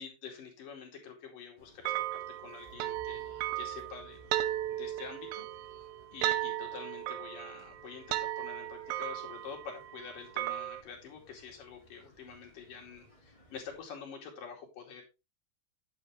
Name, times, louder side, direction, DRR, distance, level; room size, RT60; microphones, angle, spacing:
voice 1, 0.0-4.4 4.7-5.5 6.1-15.0, left 6 dB, 70° left, 1 dB, 4.1 m, -47 dB
sound 1, 1.6-13.8, equal, 10° left, 2.9 m, -62 dB
sound 2, 1.9-10.8, right 14 dB, 90° right, 2.5 m, -36 dB
sound 3, 2.6-7.5, right 1 dB, 25° right, 1.1 m, -60 dB
9.8 x 8.3 x 3.2 m, 0.26 s
omnidirectional pair, 4.1 m